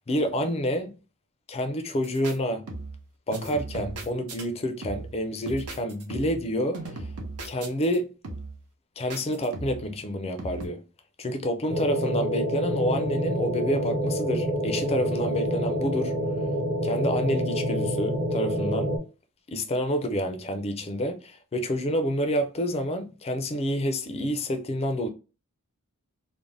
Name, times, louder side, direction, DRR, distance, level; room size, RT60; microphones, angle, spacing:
voice 1, 0.1-1.0 1.5-2.7 3.3-6.8 7.4-8.1 9.0-10.8 11.2-16.1 16.8-18.9 19.5-25.1, equal, 25° left, 0.4 m, -28 dB
sound 1, 2.0-2.3 2.7-3.1 3.3-4.4 4.8-5.2 5.5-6.5 6.7-8.0 8.2-8.6 9.1-9.9 10.4-10.7, right 2 dB, 80° right, 0.7 m, -37 dB
sound 2, 11.7-19.0, equal, 50° right, 0.9 m, -27 dB
2.5 x 2.1 x 3.1 m
head